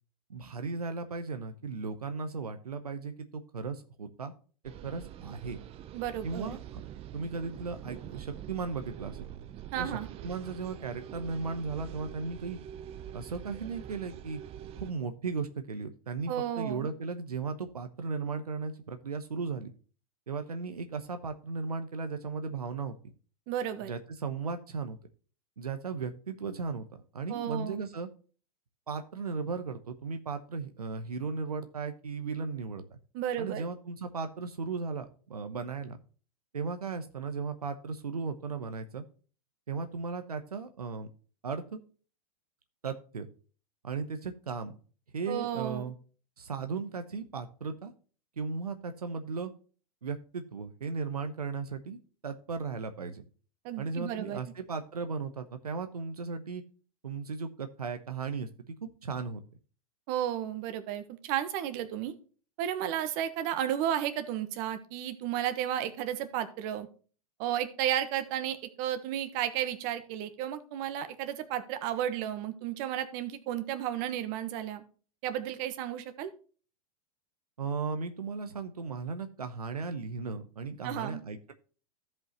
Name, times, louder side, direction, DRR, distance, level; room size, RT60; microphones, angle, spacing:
voice 1, 0.3-4.3 4.8-5.6 6.2-6.8 7.1-9.3 9.8-12.6 13.1-14.4 14.8-19.7 20.3-23.0 23.8-25.0 25.6-26.9 27.1-28.1 28.9-33.0 33.4-36.0 36.5-39.0 39.7-41.1 41.4-41.8 42.8-43.3 43.8-44.7 45.1-46.0 46.4-47.9 48.4-49.5 50.0-53.2 53.8-56.6 57.0-59.4 77.6-81.5, right 4 dB, 90° right, 8 dB, 0.9 m, -36 dB
sound 1, 4.6-14.9, right 11 dB, 30° right, 0.6 m, -45 dB
voice 2, 5.9-6.6 9.7-10.1 16.3-16.9 23.5-23.9 27.3-27.8 33.1-33.6 45.3-45.8 53.6-54.4 60.1-62.1 62.6-66.9 67.4-74.8 75.2-76.3 80.8-81.2, right 11 dB, 45° right, 10 dB, 1.3 m, -33 dB
15.0 x 5.4 x 3.0 m, 0.39 s
hypercardioid pair, 105°, 19 cm